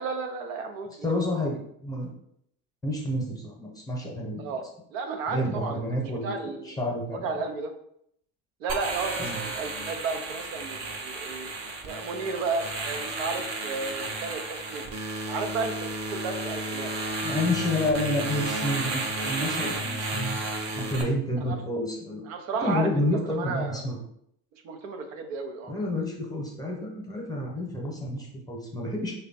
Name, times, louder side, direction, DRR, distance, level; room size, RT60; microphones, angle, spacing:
voice 1, 0.0-1.2 4.4-4.6 4.9-6.8 7.1-7.7 8.6-11.5 11.8-14.8 15.3-16.9 19.9-20.1 21.4-21.6 22.3-23.8 24.6-25.7, right 4 dB, 90° right, 5 dB, 0.7 m, -33 dB
voice 2, 1.0-2.1 2.8-4.5 5.3-7.4 9.2-9.4 17.2-20.5 20.8-22.2 22.6-24.0 25.7-29.1, left 1 dB, 10° left, -2 dB, 0.8 m, -29 dB
sound 1, 8.7-21.0, right 2 dB, 45° right, 0.8 m, -32 dB
3.3 x 2.3 x 4.0 m, 0.72 s
supercardioid pair, 110°, 38 cm